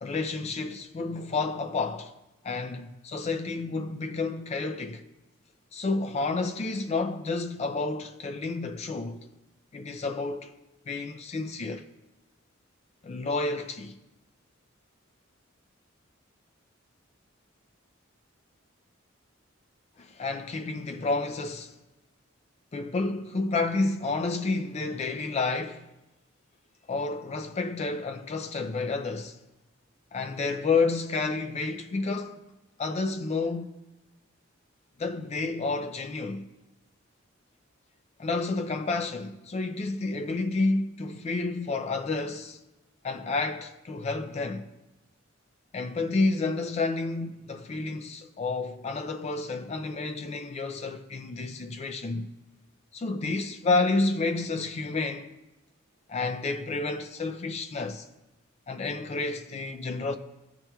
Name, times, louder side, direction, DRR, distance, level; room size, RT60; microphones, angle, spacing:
voice 1, 0.0-2.1 2.4-5.0 5.7-9.3 9.7-10.5 10.9-11.9 13.0-14.0 20.0-21.7 22.7-25.9 26.9-29.4 30.1-32.4 32.8-33.8 35.0-36.5 38.2-42.6 43.0-44.7 45.7-52.3 52.9-55.3 56.1-58.1 58.7-60.2, left 3 dB, 30° left, 0.3 m, -30 dB
12.5 x 4.3 x 2.3 m
head